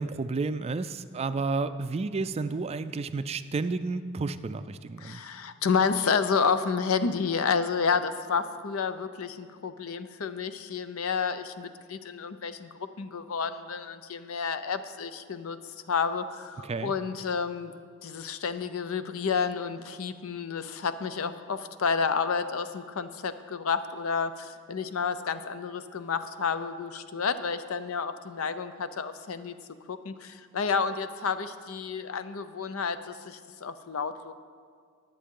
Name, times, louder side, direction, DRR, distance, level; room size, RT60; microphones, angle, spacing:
voice 1, 0.0-5.2 16.6-16.9, right 3 dB, 30° right, 12 dB, 0.4 m, -31 dB
voice 2, 5.0-12.7 13.0-15.6 15.9-17.7 18.0-29.5 29.9-34.3, left 5 dB, 85° left, 11 dB, 0.6 m, -30 dB
21.5 x 7.7 x 3.7 m, 2.1 s
head